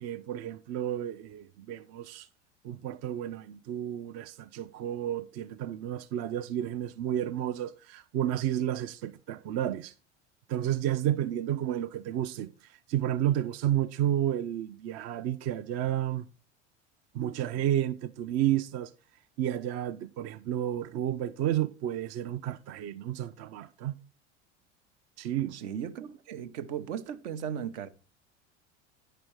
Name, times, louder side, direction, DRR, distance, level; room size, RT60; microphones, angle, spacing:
voice 1, 0.0-2.3 2.6-9.9 10.5-16.3 17.1-18.9 19.4-24.0 25.2-25.6, right 11 dB, 45° right, 0.5 m, -31 dB
voice 2, 25.5-27.9, right 8 dB, 70° right, 0.9 m, -36 dB
9.0 x 5.1 x 4.6 m
hypercardioid pair, 85°, 36 cm